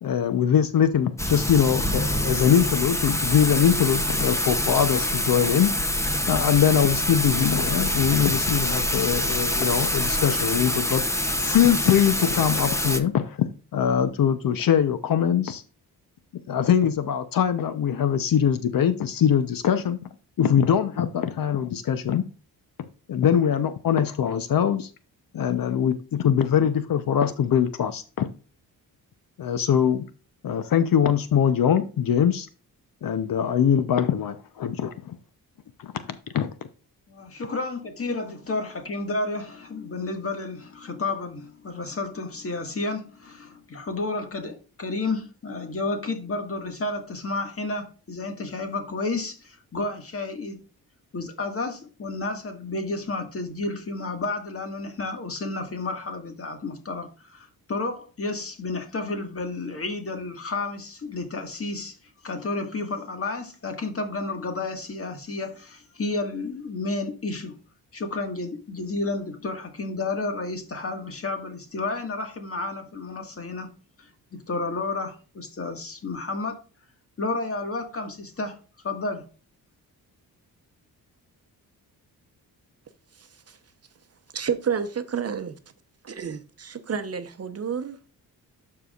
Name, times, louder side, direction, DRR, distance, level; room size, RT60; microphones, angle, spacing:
voice 1, 0.0-5.7 6.3-11.0 11.4-13.4 13.7-15.6 16.5-20.0 20.4-22.2 23.1-24.9 25.3-28.3 29.4-30.0 30.4-32.5 33.0-35.1 35.8-35.9 36.3-36.5, left 8 dB, 65° left, 0.8 m, -22 dB
Thunder / Rain, 1.2-13.0, left 1 dB, 10° left, 0.7 m, -25 dB
voice 2, 37.1-50.6 51.1-62.0 62.2-67.6 67.9-73.7 74.0-76.6 77.2-78.6 78.8-79.3, left 3 dB, 35° left, 1.8 m, -31 dB
voice 3, 84.3-85.6 86.0-88.2, right 7 dB, 40° right, 0.9 m, -30 dB
12.0 x 4.8 x 2.4 m
cardioid pair, 105°, 37 cm